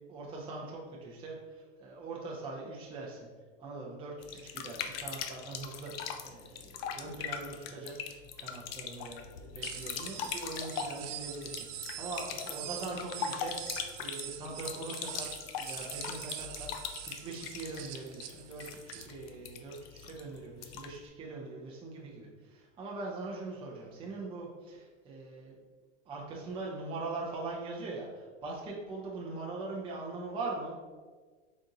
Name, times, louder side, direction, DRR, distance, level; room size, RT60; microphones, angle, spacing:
voice 1, 0.1-3.3 3.6-13.6 14.0-15.3 15.6-16.7 17.1-25.5 26.1-30.8, right 3 dB, 15° right, -3 dB, 0.5 m, -42 dB
sound 1, 4.2-21.0, left 7 dB, 55° left, 0.5 m, -41 dB
sound 2, 9.6-19.1, right 11 dB, 75° right, 0.5 m, -44 dB
3.9 x 2.6 x 3.8 m, 1.5 s
hypercardioid pair, 115°, 36 cm